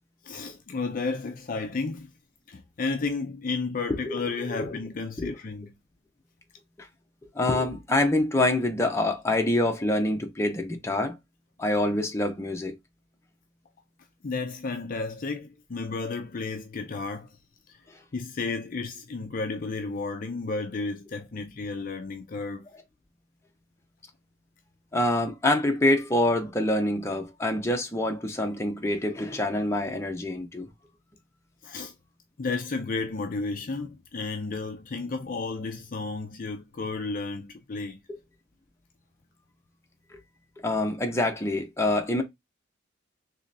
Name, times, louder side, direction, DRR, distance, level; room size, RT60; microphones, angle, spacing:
voice 1, 0.2-2.1 2.5-5.7 14.2-17.3 17.7-17.8 18.1-22.7 31.6-31.9 32.4-38.0, left 3 dB, 45° left, 0.5 m, -32 dB
voice 2, 4.1-4.7 5.2-5.3 7.3-11.2 11.6-12.7 24.9-30.7 38.1-38.2 40.6-42.2, left 1 dB, 15° left, 0.8 m, -26 dB
3.7 x 3.1 x 2.7 m
head